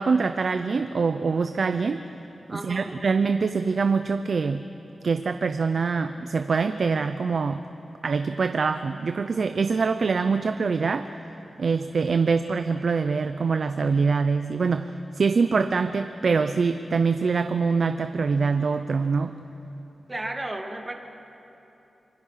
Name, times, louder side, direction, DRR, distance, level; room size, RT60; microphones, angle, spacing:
voice 1, 0.0-2.0 2.5-4.6 5.0-7.6 8.0-11.1 11.6-19.3, right 5 dB, 60° right, 9 dB, 0.6 m, -24 dB
voice 2, 2.5-3.0 20.1-20.9, right 2 dB, 20° right, 4 dB, 1.9 m, -33 dB
26.5 x 21.0 x 5.7 m, 3.0 s
wide cardioid pair, 120°, 0 cm